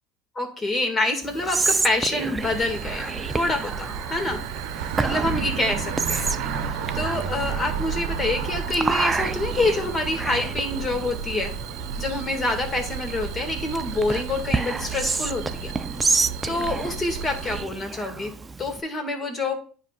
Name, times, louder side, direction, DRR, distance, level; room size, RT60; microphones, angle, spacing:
voice 1, 0.4-4.4 4.7-6.2 6.6-11.5 12.0-15.7 16.5-18.3 18.6-19.6, left 2 dB, 30° left, 5 dB, 2.0 m, -27 dB
Whispering, 1.2-18.8, right 4 dB, 20° right, 0.5 m, -30 dB
sound 1, 2.4-17.6, right 7 dB, 70° right, 0.8 m, -32 dB
9.6 x 5.0 x 2.4 m, 0.41 s
hypercardioid pair, 85°, 0 cm